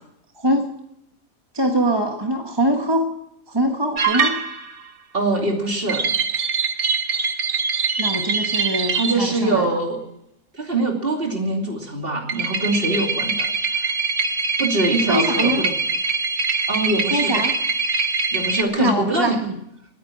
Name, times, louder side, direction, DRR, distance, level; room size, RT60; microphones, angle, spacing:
voice 1, 0.4-0.7 1.5-3.1 3.5-4.4 8.0-9.8 15.1-15.6 17.1-17.5 18.8-19.6, right 1 dB, 20° right, 3 dB, 1.3 m, -23 dB
sound 1, 4.0-4.8 5.9-9.3 12.3-18.6, right 5 dB, 60° right, 1.5 m, -23 dB
voice 2, 5.1-6.1 8.9-10.0 10.5-13.5 13.7-13.8 14.6-15.7 16.7-17.4 18.3-19.4, right 2 dB, 40° right, 1 dB, 3.0 m, -23 dB
19.0 x 9.5 x 7.5 m, 0.80 s
omnidirectional pair, 1.5 m